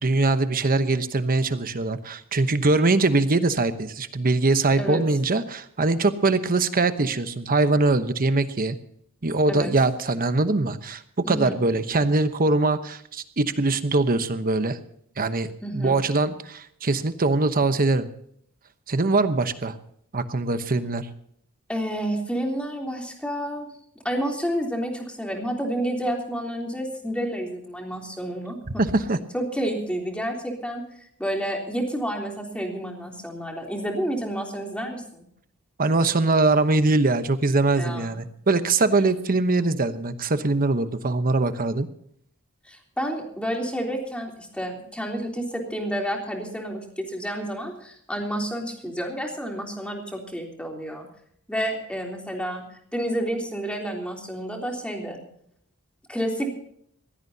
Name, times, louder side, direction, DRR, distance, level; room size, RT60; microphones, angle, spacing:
voice 1, 0.0-8.8 9.2-14.8 15.2-18.1 18.9-19.8 20.1-21.1 28.8-29.2 35.8-41.9, right 3 dB, 40° right, 10 dB, 1.0 m, -22 dB
voice 2, 11.2-11.6 15.6-16.0 21.7-23.7 24.0-28.8 29.3-35.3 37.8-38.2 42.7-51.1 51.5-52.6 52.9-55.2 56.1-56.5, equal, 5° left, 1 dB, 3.4 m, -30 dB
22.0 x 16.5 x 2.8 m, 0.67 s
head